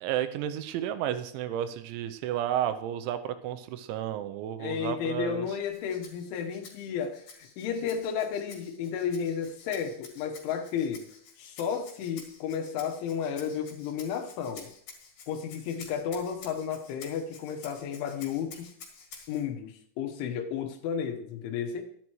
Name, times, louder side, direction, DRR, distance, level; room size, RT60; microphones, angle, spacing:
voice 1, 0.0-5.5, right 11 dB, 85° right, 10 dB, 3.0 m, -32 dB
voice 2, 4.6-11.1 11.4-14.7 15.3-18.7 19.3-21.8, left 7 dB, 85° left, 6 dB, 3.6 m, -33 dB
Rattle (instrument), 5.6-19.4, left 5 dB, 55° left, 3.3 m, -51 dB
12.0 x 11.5 x 3.1 m, 0.64 s
omnidirectional pair, 5.4 m